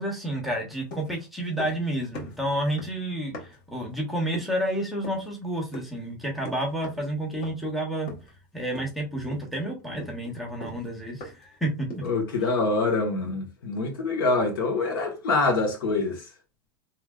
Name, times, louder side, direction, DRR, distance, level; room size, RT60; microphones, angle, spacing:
voice 1, 0.0-8.1 8.5-11.9, right 1 dB, ahead, 0.9 m, -30 dB
sound 1, 0.9-1.9 2.1-3.7 4.3-4.6 5.0-5.3 5.7-6.0 6.5-7.1 7.4-7.7 8.1-8.5 8.8-9.0 9.3-11.6 11.9-12.3, left 1 dB, 50° left, 1.2 m, -42 dB
voice 2, 12.0-16.2, left 3 dB, 80° left, 1.2 m, -25 dB
3.3 x 2.7 x 2.3 m
supercardioid pair, 135°, 11 cm